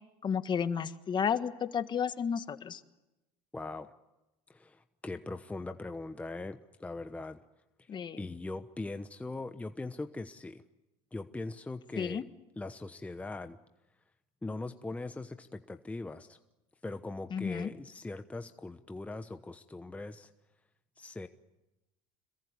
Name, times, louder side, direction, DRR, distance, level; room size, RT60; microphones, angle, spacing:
voice 1, 0.2-2.8 7.9-8.2 12.0-12.2 17.3-17.7, left 7 dB, 35° left, 10 dB, 1.6 m, -32 dB
voice 2, 3.5-3.9 4.5-7.4 7.8-10.6 11.1-12.2 12.6-13.6 14.4-16.4 16.8-20.3 21.0-21.3, left 2 dB, 10° left, 8 dB, 1.0 m, -41 dB
26.5 x 22.0 x 9.7 m, 0.99 s
supercardioid pair, 105°, 13 cm